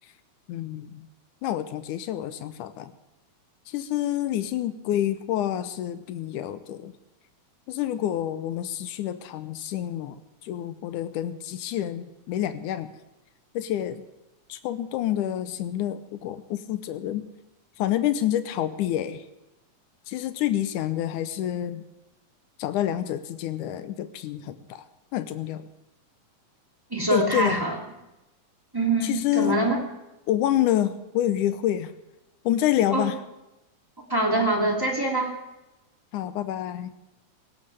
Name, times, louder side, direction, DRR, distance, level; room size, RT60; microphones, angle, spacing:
voice 1, 0.5-1.1 1.4-2.9 3.7-6.9 7.7-10.2 10.4-12.9 13.5-14.0 14.5-17.3 17.8-19.3 20.1-21.8 22.6-24.8 25.1-25.7 27.1-27.6 29.0-29.6 30.3-31.9 32.4-33.2 36.1-36.9, left 12 dB, 90° left, 11 dB, 2.3 m, -28 dB
voice 2, 26.9-27.7 28.7-29.8 32.9-33.1 34.1-35.3, right 2 dB, 10° right, 0 dB, 2.4 m, -24 dB
18.5 x 17.0 x 3.5 m, 0.97 s
omnidirectional pair, 3.5 m